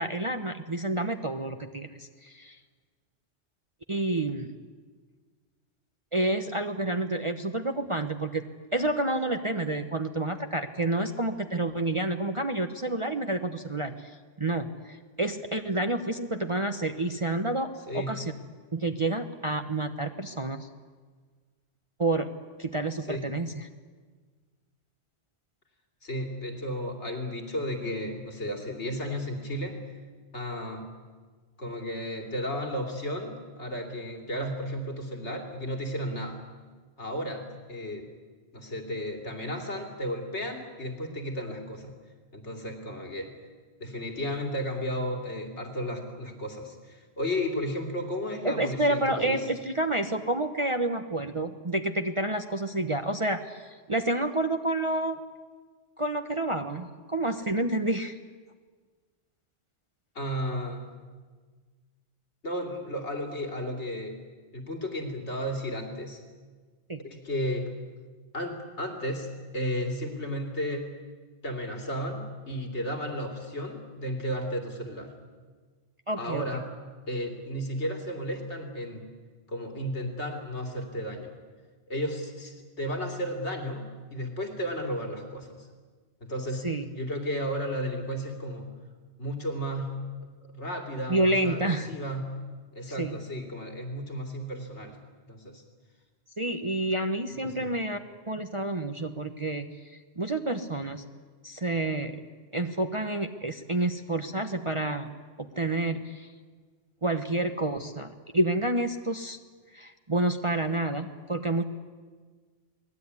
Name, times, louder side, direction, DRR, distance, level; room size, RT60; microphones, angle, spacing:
voice 1, 0.0-2.6 3.9-4.6 6.1-18.3 18.7-20.7 22.0-22.3 22.6-23.7 48.4-55.2 56.0-58.2 66.9-67.0 76.1-76.6 86.6-86.9 91.1-91.9 93.0-93.2 96.4-98.0 98.3-101.1 101.4-102.2 102.5-105.1 105.4-106.3 107.0-109.4 109.7-111.6, right 2 dB, 30° right, 5 dB, 1.1 m, -29 dB
voice 2, 17.9-18.2 23.1-23.3 26.0-29.8 30.3-30.9 31.6-36.4 37.0-38.1 38.5-42.0 42.3-43.3 43.8-49.5 60.1-60.9 62.4-64.2 64.5-66.2 67.0-67.7 68.3-70.9 71.4-75.1 76.2-76.7 77.1-79.1 79.5-81.4 81.9-85.7 86.2-86.7 86.9-88.7 89.2-90.0 90.4-92.3 92.7-95.0 95.3-95.6 97.4-97.7, equal, 75° left, 3 dB, 3.3 m, -33 dB
29.0 x 20.0 x 9.7 m, 1.5 s
omnidirectional pair, 1.2 m